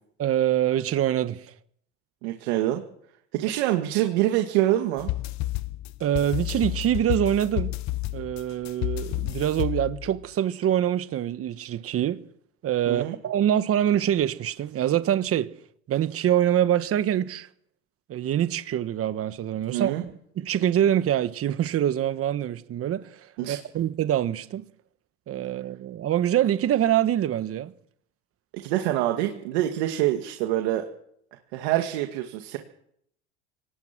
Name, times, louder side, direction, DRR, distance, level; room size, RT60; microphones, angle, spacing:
voice 1, 0.2-1.5 6.0-7.7 8.1-12.2 12.6-15.5 15.9-17.5 18.1-24.6 25.3-27.7, right 11 dB, 45° right, 1.4 m, -25 dB
voice 2, 2.2-2.8 3.3-5.1 12.9-13.2 19.7-20.0 23.4-23.6 28.6-30.8 31.5-32.6, right 14 dB, 80° right, 2.1 m, -25 dB
sound 1, 5.0-10.3, left 18 dB, 60° left, 0.9 m, -31 dB
23.0 x 19.0 x 6.1 m
supercardioid pair, 90°, 32 cm